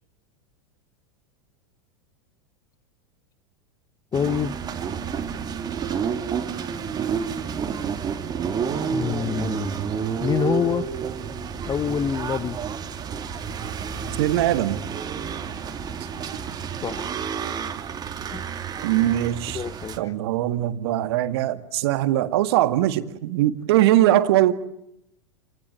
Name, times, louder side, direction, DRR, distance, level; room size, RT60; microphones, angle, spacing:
voice 1, 4.1-4.6 8.9-9.8 10.2-10.9 11.7-12.6 16.8-17.1 18.3-18.4 19.5-20.1, left 8 dB, 25° left, 1.0 m, -26 dB
sound 1, 4.1-20.0, right 7 dB, 25° right, 2.6 m, -30 dB
voice 2, 14.2-14.8 18.8-19.6 20.0-24.5, right 14 dB, 60° right, 1.9 m, -21 dB
29.0 x 19.5 x 8.8 m
figure-of-eight pair, 90°, 15 cm